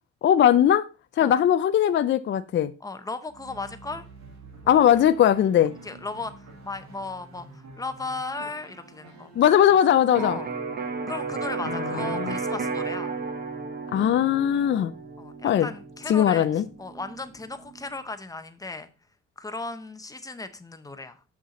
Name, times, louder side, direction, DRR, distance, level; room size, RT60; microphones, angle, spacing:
voice 1, 0.2-0.9 1.2-2.7 4.7-5.7 9.4-10.4 11.7-12.4 13.9-14.9 15.4-15.7 16.1-16.6, left 10 dB, 40° left, 0.4 m, -20 dB
voice 2, 2.8-4.0 4.6-4.8 5.8-9.3 10.1-10.5 11.1-13.1 15.2-18.9 19.4-21.2, left 3 dB, 10° left, 0.7 m, -36 dB
sound 1, 3.3-10.0, right 2 dB, 70° right, 2.0 m, -47 dB
Electric guitar, 10.1-17.9, right 4 dB, 30° right, 1.1 m, -33 dB
7.4 x 6.4 x 4.0 m
cardioid pair, 140°, 29 cm